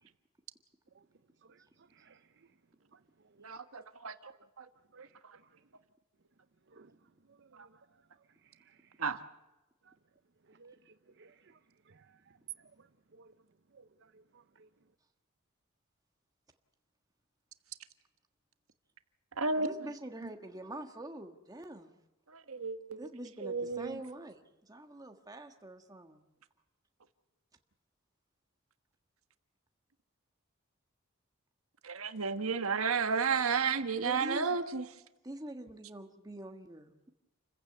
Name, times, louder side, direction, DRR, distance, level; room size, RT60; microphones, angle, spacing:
voice 1, 3.4-4.3 4.6-4.7 9.0-9.2 19.4-19.7 22.3-23.0 23.4-24.0 31.8-34.8, right 5 dB, 80° right, 1.4 m, -32 dB
voice 2, 10.5-11.5 11.9-12.1 13.1-13.3 13.7-13.8 14.1-14.2 14.6-14.7, right 4 dB, 55° right, 0.7 m, -60 dB
voice 3, 19.5-22.0 23.0-26.2 34.0-34.6 35.2-37.1, right 1 dB, 15° right, 1.5 m, -45 dB
29.0 x 15.5 x 8.2 m
head